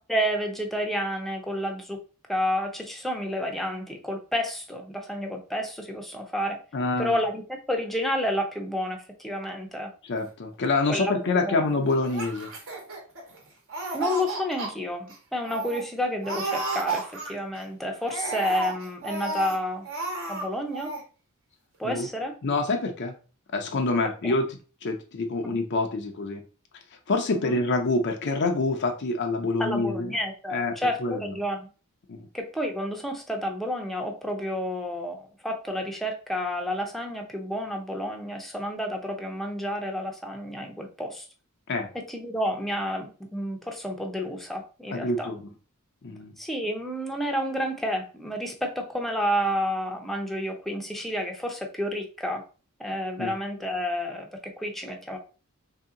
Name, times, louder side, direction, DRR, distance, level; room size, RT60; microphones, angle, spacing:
voice 1, 0.0-2.0 2.3-6.6 7.0-9.9 10.9-11.6 13.9-19.9 20.3-20.9 21.8-22.3 24.2-24.3 25.4-25.6 27.3-27.6 29.6-31.7 32.3-41.3 41.9-45.3 46.4-52.4 52.8-55.2, equal, ahead, 2 dB, 0.6 m, -30 dB
voice 2, 6.7-7.2 10.0-12.5 21.8-22.1 22.4-23.1 23.5-24.5 24.8-26.4 27.1-30.1 30.5-30.7 31.0-31.2 32.1-32.3 41.7-41.9 44.9-45.4 46.0-46.3 53.2-53.3, left 3 dB, 55° left, 4 dB, 0.5 m, -26 dB
Laughter, 12.0-13.4 13.7-14.7 15.1-15.2 15.4-15.8 16.2-17.6 18.0-19.6 19.8-20.5 20.7-21.0, right 3 dB, 65° right, 1.2 m, -32 dB
3.5 x 2.8 x 3.6 m, 0.36 s
head